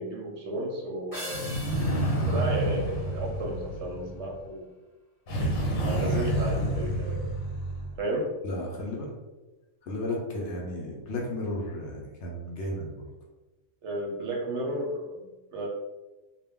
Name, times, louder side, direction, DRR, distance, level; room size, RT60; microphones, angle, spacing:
voice 1, 0.0-1.4 2.2-4.7 5.4-7.2 8.0-8.3 13.8-15.7, right 1 dB, 65° right, -1 dB, 0.8 m, -33 dB
sound 1, 1.1-3.7, equal, 20° right, 0.6 m, -43 dB
sound 2, 1.3-4.3 5.3-8.0, right 1 dB, 80° left, 1.1 m, -29 dB
voice 2, 8.4-9.1 9.8-13.1, left 1 dB, 65° left, -1 dB, 0.8 m, -34 dB
2.2 x 2.1 x 3.5 m, 1.1 s
omnidirectional pair, 1.4 m